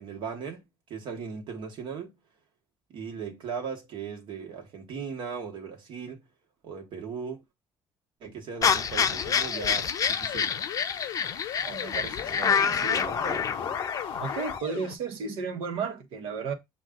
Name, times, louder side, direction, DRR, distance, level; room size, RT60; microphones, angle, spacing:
voice 1, 0.0-2.2 2.9-6.2 6.6-7.4 8.2-10.5, right 6 dB, 65° right, 1.2 m, -38 dB
sound 1, 8.6-14.6, left 6 dB, 40° left, 0.5 m, -27 dB
sound 2, 9.1-14.9, left 11 dB, 80° left, 0.7 m, -40 dB
voice 2, 11.6-13.4 14.2-16.5, right 5 dB, 80° right, 1.0 m, -34 dB
6.1 x 2.3 x 3.6 m
cardioid pair, 105°, 9 cm